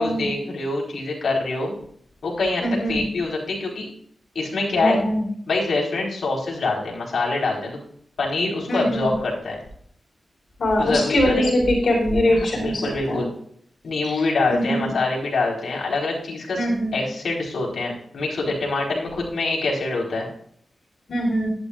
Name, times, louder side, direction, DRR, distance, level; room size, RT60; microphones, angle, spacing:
voice 1, 0.0-1.7 2.2-3.8 4.3-5.0 5.5-7.8 8.2-9.6 10.8-11.5 12.3-13.3 13.8-20.3, left 3 dB, 85° left, -2 dB, 4.2 m, -25 dB
voice 2, 2.6-3.0 4.7-5.2 8.7-9.1 10.6-12.8 13.1-13.2 14.5-14.9 16.5-16.9 21.1-21.5, equal, 70° left, -1 dB, 4.4 m, -22 dB
12.5 x 11.0 x 2.4 m, 0.62 s
wide cardioid pair, 95°, 0 cm